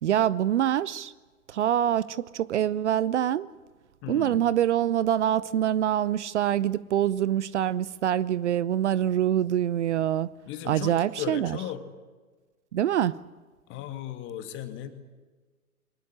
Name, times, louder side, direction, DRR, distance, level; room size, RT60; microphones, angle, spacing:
voice 1, 0.0-1.1 1.5-3.5 4.1-10.3 10.7-11.6 12.7-13.2, right 11 dB, 50° right, 0.8 m, -25 dB
voice 2, 4.0-4.4 10.5-11.9 13.7-14.9, left 10 dB, 25° left, 2.5 m, -36 dB
23.5 x 19.5 x 9.8 m
figure-of-eight pair, 115°, 43 cm